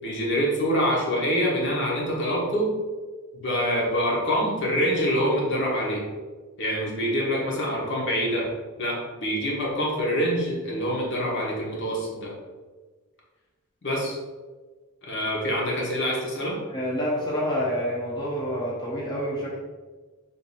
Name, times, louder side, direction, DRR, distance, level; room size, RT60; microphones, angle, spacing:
voice 1, 0.0-2.7 3.3-6.0 6.6-8.5 8.8-12.3 13.8-14.2 15.0-16.6, equal, 55° left, -3 dB, 1.0 m, -25 dB
voice 2, 16.7-19.6, equal, 20° left, -6 dB, 0.7 m, -28 dB
3.5 x 2.6 x 4.1 m, 1.3 s
head